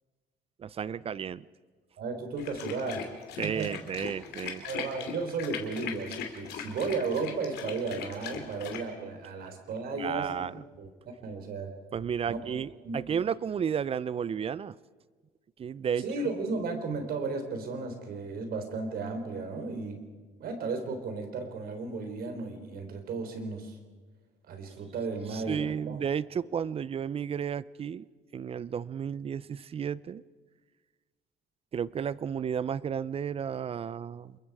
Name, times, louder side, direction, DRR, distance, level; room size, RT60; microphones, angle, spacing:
voice 1, 0.6-1.5 3.4-4.7 10.0-10.6 11.9-14.7 15.6-16.1 25.3-28.1 28.3-30.2 31.7-34.4, right 7 dB, 35° right, 20 dB, 0.6 m, -33 dB
voice 2, 2.0-3.0 3.4-3.7 4.6-10.9 11.2-11.7 12.3-12.4 12.8-13.0 16.0-20.0 20.4-23.8 24.5-26.0, right 4 dB, 65° right, 6 dB, 3.8 m, -34 dB
sound 1, 2.4-8.8, left 8 dB, 75° left, 3.0 m, -39 dB
27.5 x 22.0 x 4.8 m, 1.4 s
cardioid pair, 110°, 17 cm